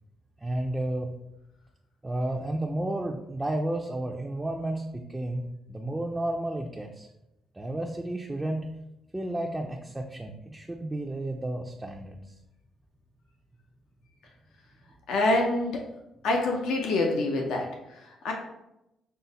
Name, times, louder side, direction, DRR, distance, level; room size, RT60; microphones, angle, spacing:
voice 1, 0.4-1.1 2.0-7.1 7.6-8.6 9.1-12.2, right 1 dB, 15° right, 1 dB, 0.4 m, -32 dB
voice 2, 15.1-15.8 16.2-17.7 18.2-18.3, left 2 dB, 85° left, 1 dB, 0.7 m, -25 dB
5.5 x 2.1 x 3.9 m, 0.88 s
cardioid pair, 90°, 0 cm